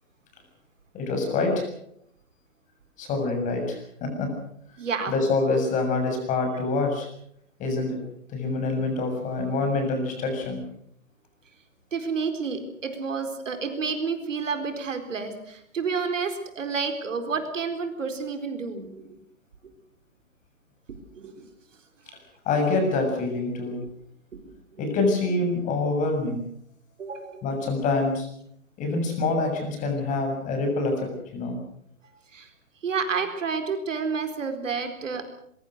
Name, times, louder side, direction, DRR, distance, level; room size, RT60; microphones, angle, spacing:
voice 1, 0.9-1.6 3.0-4.3 5.1-7.1 7.6-8.0 8.3-10.6 22.5-23.8 24.8-26.4 27.4-28.3 28.8-31.6, left 3 dB, 20° left, 4 dB, 7.0 m, -26 dB
voice 2, 4.8-5.1 11.9-19.1 21.1-21.5 24.7-24.8 27.0-27.4 32.3-32.5 32.8-35.2, right 5 dB, 60° right, 7 dB, 4.3 m, -30 dB
23.5 x 23.0 x 6.6 m, 0.71 s
figure-of-eight pair, 140°, 41 cm